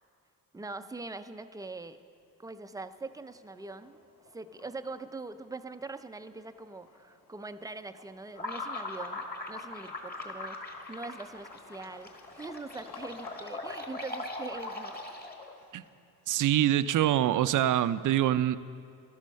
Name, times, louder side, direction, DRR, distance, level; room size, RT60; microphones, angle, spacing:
voice 1, 0.5-2.0 2.4-4.0 4.3-15.0, right 3 dB, 10° right, 10 dB, 0.4 m, -42 dB
sound 1, 1.7-2.3 2.7-16.2, left 4 dB, 60° left, 2.2 m, -56 dB
sound 2, 8.3-15.6, left 2 dB, 25° left, 1.6 m, -40 dB
voice 2, 16.3-18.6, right 12 dB, 60° right, 14 dB, 0.5 m, -25 dB
12.0 x 12.0 x 6.4 m, 2.3 s
cardioid pair, 115°, 36 cm